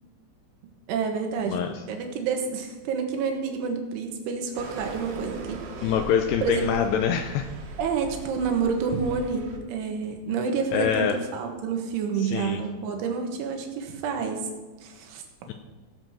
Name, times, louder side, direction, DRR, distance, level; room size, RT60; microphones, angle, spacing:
voice 1, 0.9-1.6 1.9-5.9 6.4-7.0 7.8-14.4 14.8-15.2, right 5 dB, 85° right, 4 dB, 3.9 m, -29 dB
sound 1, 4.5-9.6, right 3 dB, 60° right, 2.3 m, -40 dB
voice 2, 5.8-7.5 10.7-11.2 12.2-12.6 15.5-15.6, left 8 dB, 85° left, 6 dB, 2.6 m, -25 dB
16.5 x 7.6 x 6.2 m, 1.3 s
omnidirectional pair, 5.5 m